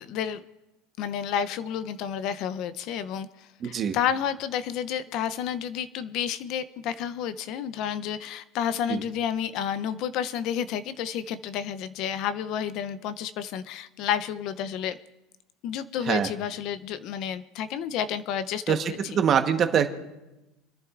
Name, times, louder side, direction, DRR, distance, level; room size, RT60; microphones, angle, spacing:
voice 1, 0.1-0.4 1.0-15.0 15.6-19.0, left 9 dB, 50° left, 13 dB, 0.5 m, -30 dB
voice 2, 3.6-4.0 8.9-9.0 16.0-16.3 18.7-19.9, right 8 dB, 30° right, 7 dB, 1.0 m, -24 dB
28.5 x 11.0 x 2.4 m, 1.0 s
supercardioid pair, 150°, 0 cm